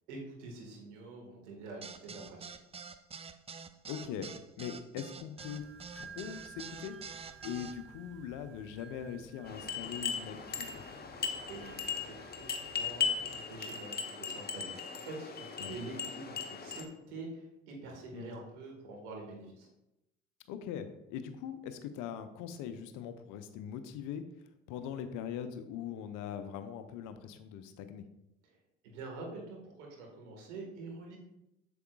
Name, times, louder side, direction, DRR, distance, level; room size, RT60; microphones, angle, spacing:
voice 1, 0.1-2.6 11.2-19.7 28.8-31.2, right 3 dB, 75° right, -1 dB, 1.8 m, -46 dB
sound 1, 1.8-7.7, right 5 dB, 15° right, 0.4 m, -46 dB
voice 2, 3.9-4.3 4.6-5.6 5.9-7.0 7.4-10.8 15.6-15.8 18.1-18.3 20.5-24.2 24.7-28.0, left 8 dB, 60° left, 10 dB, 0.8 m, -41 dB
sound 2, 5.4-13.7, right 5 dB, 35° right, 2.6 m, -54 dB
sound 3, 9.5-16.8, left 6 dB, 25° left, 1.0 m, -38 dB
8.1 x 6.9 x 2.4 m, 0.89 s
hypercardioid pair, 55°, 36 cm